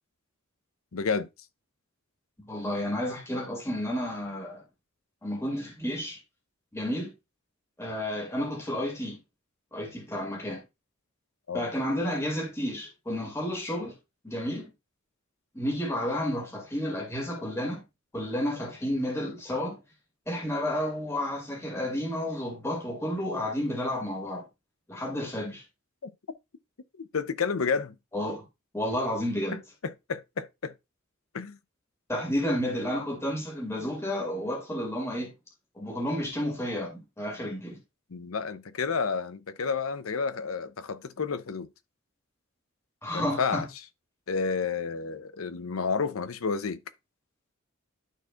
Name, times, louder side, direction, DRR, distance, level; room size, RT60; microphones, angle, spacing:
voice 1, 0.9-1.3 11.5-11.7 26.0-26.1 27.0-27.9 30.1-30.7 31.3-31.6 38.1-41.7 43.1-43.7 44.3-46.8, left 5 dB, 80° left, 0.7 m, -30 dB
voice 2, 2.4-4.6 5.2-6.2 6.7-7.1 7.8-9.2 9.7-10.6 11.5-14.0 14.2-14.7 15.5-17.8 18.1-19.8 20.3-24.5 24.9-25.6 28.1-28.5 28.7-29.6 32.1-35.3 35.8-37.8 43.0-43.6, left 1 dB, 15° left, 2.2 m, -31 dB
12.0 x 4.4 x 2.4 m
head